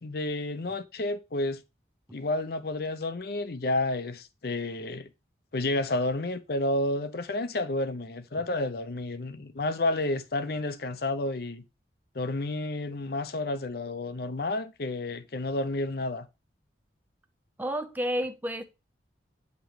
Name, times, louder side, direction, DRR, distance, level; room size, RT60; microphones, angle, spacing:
voice 1, 0.0-1.6 2.1-5.1 5.5-11.6 12.1-16.3, left 2 dB, 55° left, 0.6 m, -30 dB
voice 2, 17.6-18.6, equal, 10° right, 0.6 m, -30 dB
9.1 x 3.0 x 4.9 m
head